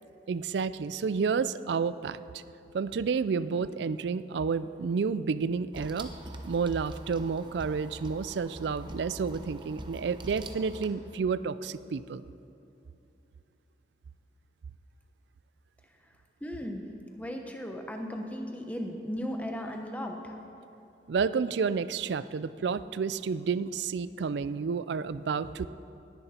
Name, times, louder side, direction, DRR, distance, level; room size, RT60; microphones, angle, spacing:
voice 1, 0.3-2.4 2.7-6.1 6.4-12.2 21.1-25.7, right 5 dB, 75° right, 15 dB, 0.4 m, -30 dB
sound 1, 5.7-10.9, right 1 dB, 25° right, 0.8 m, -44 dB
voice 2, 16.4-16.9 17.2-20.4, equal, 10° left, 3 dB, 1.0 m, -36 dB
18.0 x 10.5 x 4.4 m, 2.8 s
head